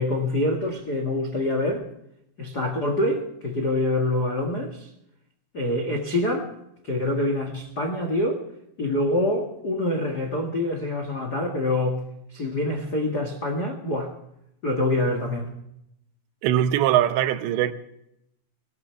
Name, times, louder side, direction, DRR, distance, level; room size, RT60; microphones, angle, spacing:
voice 1, 0.0-1.8 2.4-4.9 5.5-6.5 6.8-8.4 8.8-12.0 12.3-14.1 14.6-15.5, left 1 dB, 55° left, 1.0 m, -25 dB
voice 2, 16.4-17.7, right 11 dB, 80° right, 3.1 m, -21 dB
20.0 x 18.5 x 3.4 m
omnidirectional pair, 5.1 m